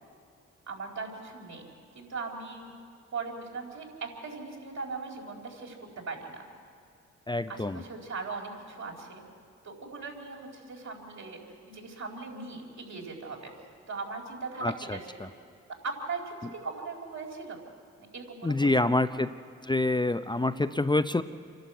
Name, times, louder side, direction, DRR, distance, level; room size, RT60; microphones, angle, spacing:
voice 1, 0.7-1.7 1.9-2.7 3.1-5.8 6.1-6.4 7.5-9.2 9.6-11.4 11.7-13.5 13.9-15.3 15.8-17.6 18.0-18.7 19.1-19.2, right 4 dB, 65° right, -1 dB, 4.5 m, -39 dB
voice 2, 7.3-7.8 14.6-15.3 18.4-19.3 19.6-21.2, left 2 dB, 15° left, 9 dB, 0.6 m, -27 dB
27.5 x 12.0 x 8.2 m, 2.4 s
hypercardioid pair, 45°, 31 cm